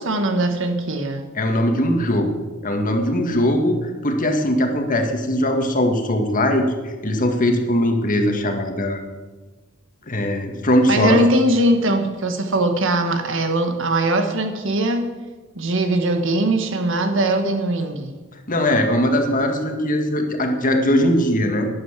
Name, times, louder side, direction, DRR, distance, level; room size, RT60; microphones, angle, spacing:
voice 1, 0.0-1.2 10.9-15.1 15.5-18.1, right 1 dB, 65° right, 6 dB, 1.6 m, -20 dB
voice 2, 1.4-2.3 2.6-9.0 10.1-11.2 18.5-21.7, left 1 dB, 40° left, 4 dB, 1.8 m, -20 dB
11.5 x 10.5 x 7.4 m, 1.3 s
head